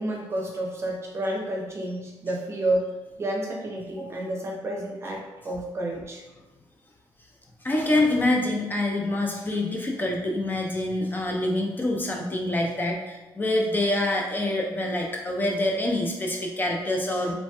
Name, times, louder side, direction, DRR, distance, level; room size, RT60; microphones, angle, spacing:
voice 1, 0.0-2.9 3.2-6.2, right 1 dB, 30° right, -1 dB, 0.6 m, -30 dB
voice 2, 7.6-17.3, left 1 dB, 25° left, 0 dB, 0.4 m, -26 dB
3.1 x 2.1 x 2.8 m, 1.1 s
cardioid pair, 90°, 9 cm